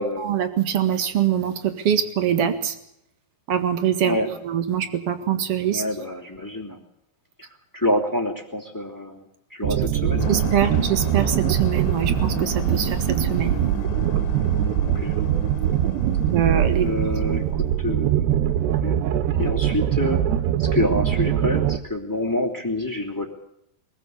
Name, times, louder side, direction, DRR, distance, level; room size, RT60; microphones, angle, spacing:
voice 1, 0.2-2.7 3.5-4.1 4.4-5.8 10.3-13.6 16.1-16.9, right 9 dB, 60° right, 9 dB, 1.5 m, -23 dB
voice 2, 5.7-6.8 7.7-9.2 9.5-10.4 10.6-10.8 14.8-15.1 16.8-17.4 17.8-19.0 19.4-20.2 20.6-23.3, left 1 dB, 5° left, 4 dB, 1.5 m, -27 dB
sound 1, 9.6-21.8, right 10 dB, 75° right, 2.9 m, -22 dB
sound 2, 10.2-17.8, left 8 dB, 80° left, 3.3 m, -35 dB
23.5 x 15.5 x 8.2 m, 0.77 s
omnidirectional pair, 5.4 m